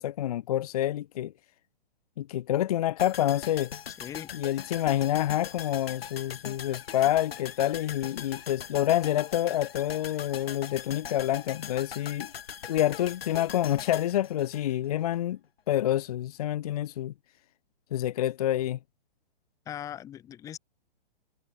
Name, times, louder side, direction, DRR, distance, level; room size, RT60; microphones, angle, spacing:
voice 1, 0.0-1.3 2.2-3.7 4.3-12.3 12.7-15.4 15.7-17.1 17.9-18.8, left 12 dB, 40° left, 0.6 m, -27 dB
sound 1, 3.0-15.2 15.4-15.5, left 8 dB, 70° left, 3.1 m, -41 dB
voice 2, 4.0-4.3 19.7-20.6, left 10 dB, 10° left, 0.9 m, -40 dB
hypercardioid pair, 155°, 31 cm